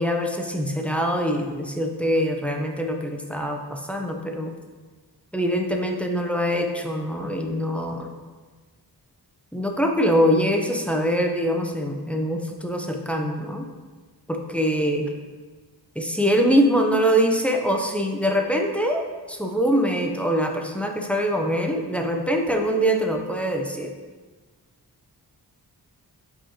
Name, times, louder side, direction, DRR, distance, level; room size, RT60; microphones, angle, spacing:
voice 1, 0.0-4.5 5.3-8.1 9.5-13.6 14.3-15.1 16.0-23.9, equal, 5° left, 3 dB, 0.4 m, -23 dB
5.3 x 3.6 x 2.8 m, 1.4 s
wide cardioid pair, 70°, 40 cm